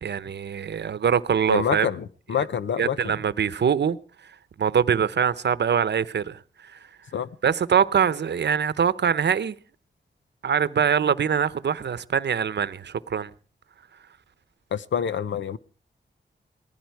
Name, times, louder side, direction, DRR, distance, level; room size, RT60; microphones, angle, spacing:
voice 1, 0.0-1.9 2.8-4.0 4.6-6.4 6.7-6.8 7.4-9.5 10.4-13.3, right 7 dB, 70° right, 0.8 m, -23 dB
voice 2, 1.5-3.2 7.1-7.3 14.7-15.6, left 8 dB, 85° left, 0.8 m, -27 dB
19.0 x 15.0 x 4.7 m
cardioid pair, 75°, 19 cm